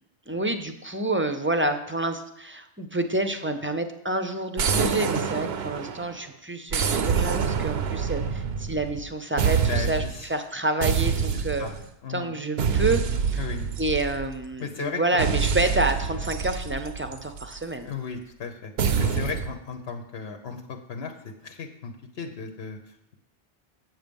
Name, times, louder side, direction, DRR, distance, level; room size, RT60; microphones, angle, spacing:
voice 1, 0.3-10.0 10.3-11.7 12.1-13.4 13.8-17.9, right 2 dB, 15° right, 8 dB, 0.5 m, -28 dB
sound 1, 4.6-6.2 6.7-9.1 9.4-10.2 10.8-11.8 12.6-14.5 15.2-17.6 18.8-19.5, right 6 dB, 80° right, 0.9 m, -26 dB
voice 2, 9.7-10.3 11.3-11.7 12.0-12.3 13.4-13.7 14.6-15.0 17.8-18.7 19.0-21.1 21.4-23.2, left 5 dB, 85° left, 5 dB, 1.1 m, -35 dB
7.8 x 7.6 x 5.3 m, 0.80 s
omnidirectional pair, 1.0 m